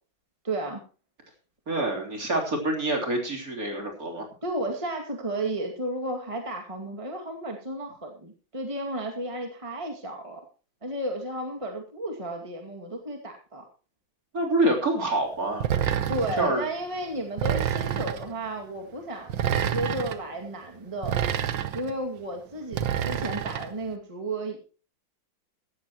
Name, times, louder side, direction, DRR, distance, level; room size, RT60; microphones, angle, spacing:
voice 1, 0.4-0.8 4.4-10.4 10.8-13.6 16.1-21.2 21.7-24.7, right 1 dB, 15° right, 2 dB, 2.2 m, -33 dB
voice 2, 1.7-4.2 14.3-15.7 16.4-16.6, right 1 dB, 45° right, 1 dB, 3.9 m, -26 dB
sound 1, 15.6-16.5 17.4-18.3 19.3-20.2 21.0-21.9 22.7-23.7, right 9 dB, 75° right, 1.7 m, -27 dB
16.5 x 14.0 x 3.0 m, 0.36 s
omnidirectional pair, 2.1 m